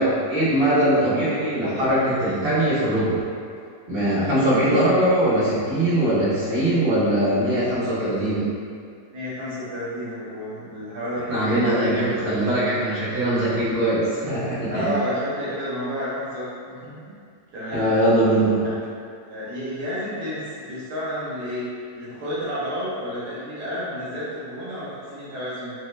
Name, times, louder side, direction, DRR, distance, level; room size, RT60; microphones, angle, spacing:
voice 1, 0.0-3.2 3.9-8.5 11.3-15.0 17.7-18.7, right 1 dB, 40° right, -13 dB, 1.6 m, -21 dB
voice 2, 9.1-12.9 14.7-17.1 17.5-17.9 19.3-21.7 21.9-25.7, equal, 80° right, -9 dB, 1.6 m, -31 dB
4.2 x 2.8 x 3.2 m, 2.3 s
omnidirectional pair, 1.7 m